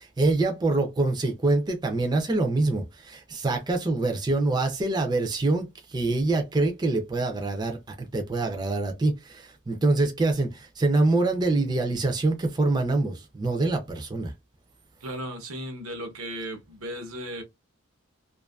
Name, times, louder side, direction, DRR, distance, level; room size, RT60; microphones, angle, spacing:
voice 1, 0.0-14.3, right 2 dB, 20° right, 0.3 m, -25 dB
voice 2, 15.0-17.4, equal, 85° right, 0.8 m, -36 dB
2.5 x 2.4 x 2.2 m
head